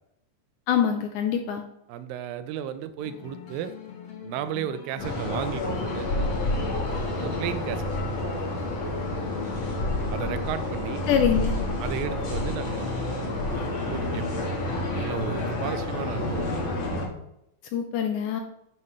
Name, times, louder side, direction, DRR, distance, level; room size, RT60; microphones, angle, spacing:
voice 1, 0.7-1.6 11.1-11.5 17.7-18.4, left 8 dB, 85° left, 5 dB, 1.8 m, -24 dB
voice 2, 1.9-3.7 4.2-6.1 7.2-7.8 10.1-11.0 11.8-13.0 13.5-14.3 14.9-16.4, right 10 dB, 85° right, 11 dB, 2.3 m, -34 dB
sound 1, 3.0-9.8, left 6 dB, 65° left, 1.4 m, -44 dB
sound 2, 5.0-17.1, left 2 dB, 50° left, 1.7 m, -29 dB
9.6 x 5.4 x 3.1 m, 0.82 s
omnidirectional pair, 4.1 m